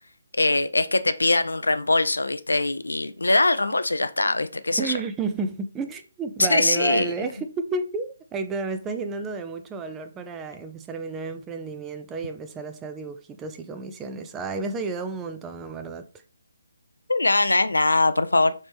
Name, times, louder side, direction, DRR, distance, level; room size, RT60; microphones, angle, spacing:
voice 1, 0.3-4.9 6.4-7.1 17.1-18.5, left 2 dB, 90° left, 0.4 m, -22 dB
voice 2, 4.8-16.1, right 4 dB, 15° right, 0.3 m, -31 dB
3.2 x 2.9 x 3.4 m
figure-of-eight pair, 150°, 0 cm